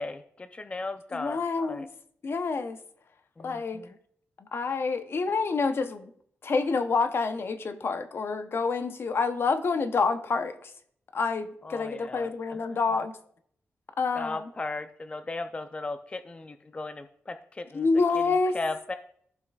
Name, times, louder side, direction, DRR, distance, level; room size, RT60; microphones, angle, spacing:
voice 1, 0.0-1.4 1.7-1.9 3.4-4.0 11.6-12.8 14.2-17.9 18.2-18.9, left 3 dB, 25° left, 0.4 m, -36 dB
voice 2, 1.1-1.9 2.2-2.8 3.4-3.8 4.5-6.1 6.4-10.7 11.1-13.1 14.0-14.5 17.7-18.6, left 4 dB, 55° left, 0.7 m, -27 dB
15.0 x 5.8 x 2.3 m
wide cardioid pair, 95°, 5 cm